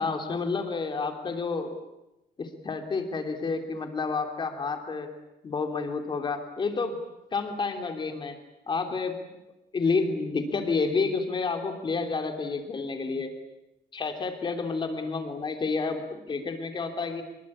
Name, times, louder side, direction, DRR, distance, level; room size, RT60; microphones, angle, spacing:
voice 1, 0.0-1.7 2.4-5.1 5.4-7.0 7.3-8.4 8.7-9.2 9.7-13.3 13.9-17.2, left 4 dB, 30° left, 5 dB, 3.2 m, -29 dB
24.5 x 23.0 x 8.7 m, 0.95 s
cardioid pair, 175°, 16 cm